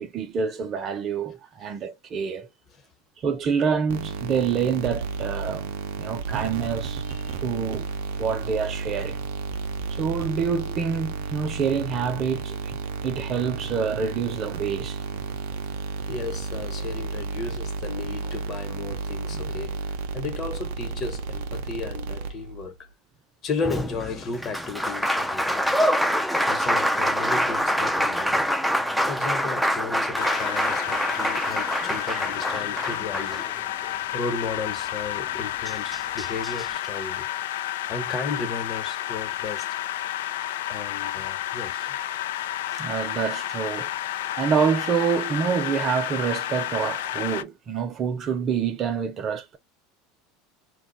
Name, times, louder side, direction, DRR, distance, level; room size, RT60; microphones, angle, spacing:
voice 1, 0.0-2.5 3.2-5.7 6.0-7.0 7.4-7.9 8.2-9.2 9.9-12.8 13.0-15.0 42.7-43.9 44.4-49.6, right 6 dB, 40° right, 0.7 m, -27 dB
sound 1, 3.9-22.7, right 4 dB, 80° right, 0.6 m, -32 dB
voice 2, 7.1-7.4 16.1-22.9 23.4-25.8 26.2-28.5 29.1-33.6 34.1-37.3 37.9-39.7 40.7-42.0, left 4 dB, 40° left, 1.1 m, -34 dB
Applause, 23.6-33.9 35.3-35.4 35.7-36.7, equal, ahead, 0.4 m, -25 dB
sound 2, 30.2-47.4, left 13 dB, 85° left, 0.3 m, -31 dB
2.4 x 2.3 x 3.9 m
supercardioid pair, 115°, 0 cm